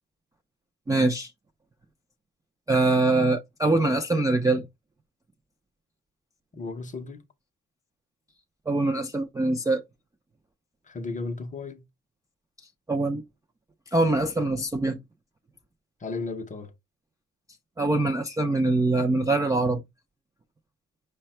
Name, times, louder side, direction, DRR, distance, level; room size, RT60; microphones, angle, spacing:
voice 1, 0.9-1.3 2.7-4.6 8.7-9.8 12.9-13.2 13.9-15.0 17.8-19.8, right 2 dB, 10° right, 0.3 m, -23 dB
voice 2, 6.5-7.2 10.9-11.8 16.0-16.7, left 3 dB, 25° left, 0.6 m, -34 dB
5.4 x 2.2 x 4.2 m
cardioid pair, 160°, 30 cm